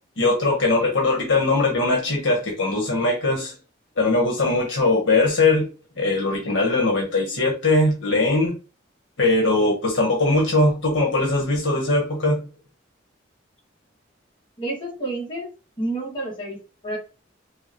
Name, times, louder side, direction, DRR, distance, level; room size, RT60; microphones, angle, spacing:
voice 1, 0.2-3.5 4.0-5.7 6.0-8.5 9.2-12.4, left 2 dB, 70° left, 1.2 m, -20 dB
voice 2, 14.6-15.5 15.8-16.6 16.8-17.0, right 2 dB, 25° left, 2.0 m, -29 dB
5.4 x 2.0 x 2.9 m
head